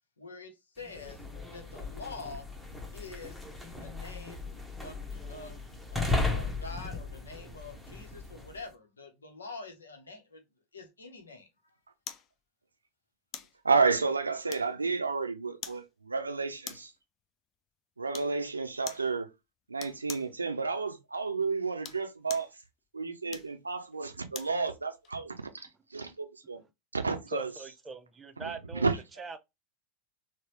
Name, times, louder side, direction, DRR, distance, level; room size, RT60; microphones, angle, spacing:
voice 1, 0.2-1.2 1.5-2.5 2.9-3.4 3.8-4.5 4.8-5.0 5.3-5.6 5.9-10.4 10.7-11.5, left 3 dB, 75° left, 0.9 m, -45 dB
sound 1, 0.8-8.6, left 3 dB, 5° left, 0.9 m, -36 dB
sound 2, 12.1-12.3 13.3-13.6 14.5-14.9 15.6-15.9 16.6-17.0 18.1-18.4 18.9-19.1 19.8-20.3 21.7-22.5 23.3-24.6 25.0-25.2, left 8 dB, 35° left, 0.5 m, -43 dB
voice 2, 13.6-16.9 18.0-19.3 19.7-22.5 22.9-26.6 26.9-27.5 28.4-29.0, right 4 dB, 80° right, 0.5 m, -31 dB
voice 3, 27.3-28.9 29.2-29.4, right 4 dB, 20° right, 0.6 m, -41 dB
4.0 x 2.2 x 3.0 m
figure-of-eight pair, 85°, 0 cm